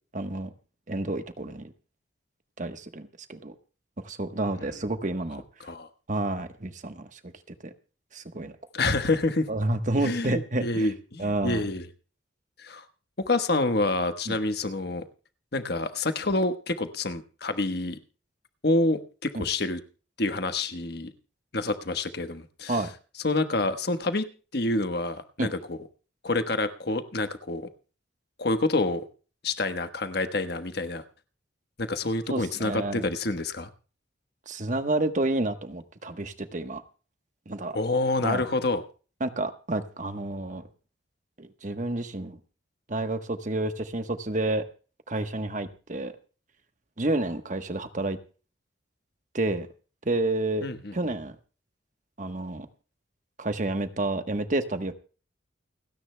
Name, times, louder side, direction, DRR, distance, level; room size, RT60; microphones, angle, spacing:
voice 1, 0.1-0.5 0.9-1.7 2.6-3.5 4.0-5.4 6.1-7.7 8.1-8.5 8.8-8.9 9.5-10.9 11.2-11.6 14.3-14.4 19.3-19.4 22.7-22.9 25.4-25.5 32.3-33.1 34.5-36.8 37.5-37.8 38.2-38.5 39.2-40.6 41.4-42.4 42.9-44.7 45.1-46.2 47.0-48.2 49.3-49.7 50.0-50.7 50.9-51.3 52.2-52.7 53.4-54.9, right 2 dB, 40° right, 9 dB, 1.1 m, -30 dB
voice 2, 8.7-9.5 10.0-11.9 12.6-12.8 13.2-15.0 15.5-18.0 18.6-19.8 20.2-21.1 21.5-22.8 23.2-25.8 26.2-27.7 28.4-29.0 29.4-31.0 31.8-33.7 37.7-38.8 50.6-50.9, left 2 dB, 55° left, 9 dB, 1.2 m, -27 dB
29.5 x 9.9 x 2.2 m, 0.37 s
head